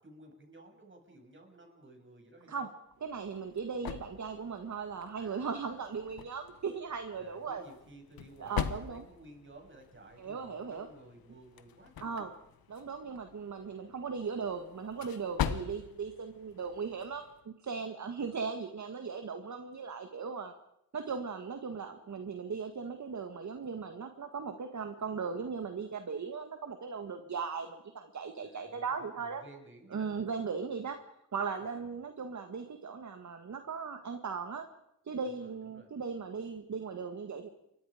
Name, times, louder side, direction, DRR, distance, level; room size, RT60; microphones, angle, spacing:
voice 1, 0.0-2.7 5.1-5.8 7.2-12.3 15.4-15.9 28.4-30.3 31.6-31.9 35.2-35.9, right 2 dB, 35° right, 2 dB, 7.0 m, -56 dB
sound 1, 2.9-17.4, left 9 dB, 90° left, 1.3 m, -43 dB
voice 2, 3.0-7.6 8.4-9.1 10.2-10.9 12.0-12.3 12.7-20.5 20.9-29.4 29.9-31.0 31.3-34.7 35.1-37.5, right 5 dB, 55° right, 7 dB, 1.8 m, -38 dB
28.5 x 23.5 x 5.1 m, 0.81 s
cardioid pair, 85°, 35 cm